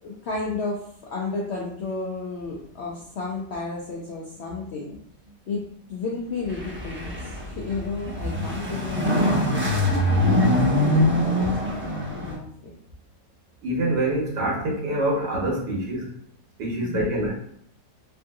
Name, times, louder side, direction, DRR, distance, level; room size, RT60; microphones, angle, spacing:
voice 1, 0.0-5.0 5.5-5.6 5.9-7.2 7.4-10.5 11.1-11.5 12.2-12.7 16.8-17.1, left 3 dB, 85° left, -4 dB, 0.5 m, -32 dB
sound 1, 6.4-12.3, left 1 dB, 10° right, 0.6 m, -23 dB
voice 2, 13.6-16.1 16.6-17.3, right 1 dB, 85° right, -3 dB, 1.6 m, -25 dB
3.5 x 2.6 x 2.3 m, 0.66 s
omnidirectional pair, 1.8 m